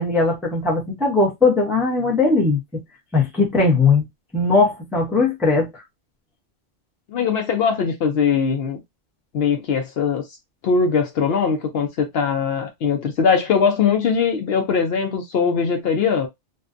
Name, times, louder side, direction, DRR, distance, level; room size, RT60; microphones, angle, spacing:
voice 1, 0.0-2.8 3.1-4.0 4.3-5.7, left 3 dB, ahead, 0.5 m, -19 dB
voice 2, 7.1-8.8 9.3-10.2 10.6-16.3, left 6 dB, 65° left, 0.7 m, -21 dB
2.5 x 2.2 x 2.4 m
omnidirectional pair, 1.2 m